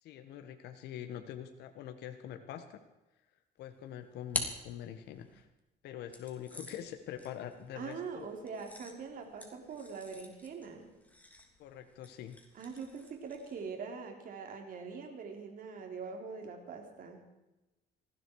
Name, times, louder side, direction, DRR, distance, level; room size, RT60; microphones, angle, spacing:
voice 1, 0.0-2.8 3.6-5.5 5.8-8.3 11.6-12.4, left 10 dB, 80° left, 7 dB, 1.4 m, -44 dB
sound 1, 3.6-5.4 6.1-13.7, left 1 dB, 10° left, 3.1 m, -46 dB
voice 2, 7.8-10.9 12.5-17.3, right 5 dB, 55° right, 3 dB, 3.9 m, -43 dB
19.5 x 15.5 x 4.8 m, 1.0 s
cardioid pair, 110°, 17 cm